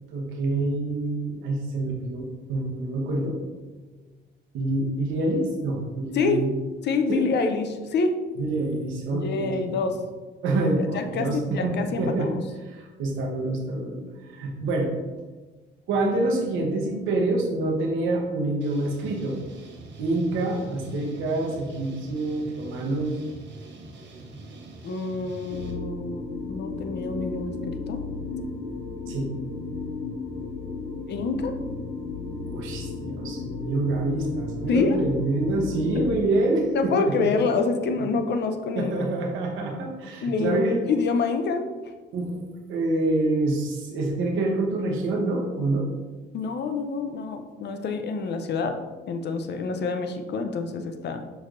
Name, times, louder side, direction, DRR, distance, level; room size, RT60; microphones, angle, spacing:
voice 1, 0.1-3.4 4.5-6.5 7.1-7.3 8.4-9.6 10.4-12.3 12.6-14.9 15.9-19.4 20.0-23.2 29.1-29.3 32.4-37.3 37.9-38.0 38.7-40.8 42.1-42.4 42.7-45.9, right 2 dB, 90° right, 0 dB, 0.9 m, -26 dB
voice 2, 6.1-6.4 6.8-8.2 9.1-10.0 10.9-12.4 24.8-28.0 31.1-31.5 34.7-35.0 36.7-38.9 40.2-41.6 46.3-48.8 49.1-51.2, left 4 dB, 60° left, 7 dB, 0.6 m, -27 dB
sound 1, 18.6-25.7, right 2 dB, 65° right, 0.9 m, -44 dB
sound 2, 25.5-36.2, left 4 dB, 85° left, 1.2 m, -34 dB
6.2 x 3.3 x 2.5 m, 1.3 s
cardioid pair, 90°, 20 cm